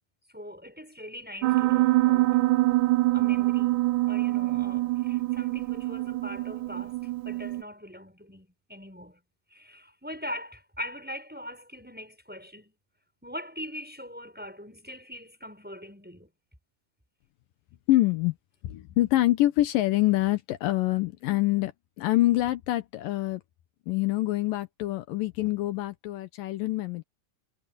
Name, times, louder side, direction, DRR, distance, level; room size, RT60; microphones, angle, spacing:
voice 1, 0.3-2.4 3.1-9.2 9.5-12.7 13.2-16.3, equal, 5° right, 6.6 m, -42 dB
Piano, 1.4-7.6, right 19 dB, 80° right, 1.8 m, -25 dB
voice 2, 17.9-18.4 18.6-23.4 23.9-27.0, left 16 dB, 80° left, 2.6 m, -25 dB
omnidirectional pair, 4.0 m